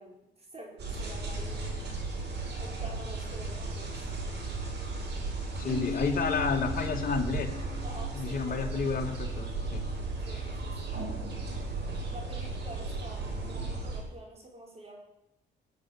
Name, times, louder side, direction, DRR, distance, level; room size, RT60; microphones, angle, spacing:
voice 1, 0.0-1.8 2.6-4.1 7.8-8.7 10.3-11.0 12.1-15.0, right 1 dB, 30° right, -1 dB, 4.8 m, -47 dB
sound 1, 0.8-14.0, right 3 dB, 60° right, 7.1 m, -35 dB
voice 2, 5.6-7.5 8.1-9.8, left 5 dB, 45° left, 1 dB, 2.8 m, -31 dB
Keyboard (musical), 5.7-8.3, left 5 dB, 5° left, 7.1 m, -38 dB
19.5 x 8.7 x 6.6 m, 0.90 s
cardioid pair, 90°, 20 cm